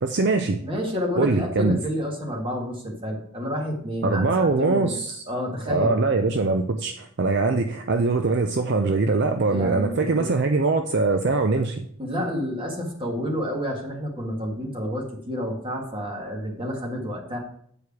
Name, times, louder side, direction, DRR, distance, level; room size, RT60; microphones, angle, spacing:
voice 1, 0.0-0.6 1.2-1.8 4.0-5.2 5.7-11.8, right 3 dB, 50° right, 6 dB, 0.5 m, -22 dB
voice 2, 0.6-4.9 5.3-6.0 9.5-10.3 12.0-17.4, equal, 25° right, 0 dB, 1.7 m, -29 dB
8.6 x 4.8 x 4.7 m, 0.64 s
head